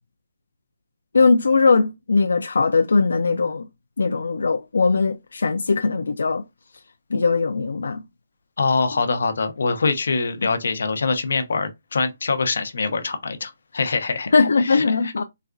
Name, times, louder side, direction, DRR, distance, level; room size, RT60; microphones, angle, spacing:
voice 1, 1.1-3.6 4.0-6.4 7.1-8.0 14.3-15.2, left 4 dB, 90° left, 0.3 m, -19 dB
voice 2, 8.6-15.2, left 4 dB, 65° left, 0.8 m, -24 dB
4.1 x 2.3 x 2.4 m
hypercardioid pair, 175°, 0 cm